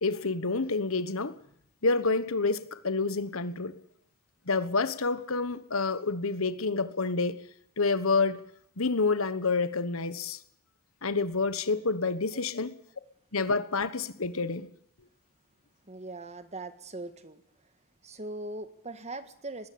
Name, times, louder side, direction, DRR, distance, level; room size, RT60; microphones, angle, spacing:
voice 1, 0.0-1.4 1.8-3.8 4.5-7.4 7.8-8.4 8.8-10.4 11.0-12.7 13.3-14.7, left 3 dB, 65° left, 1.3 m, -28 dB
voice 2, 15.8-17.4 18.0-19.7, right 2 dB, 30° right, 1.7 m, -40 dB
20.5 x 17.0 x 8.7 m
head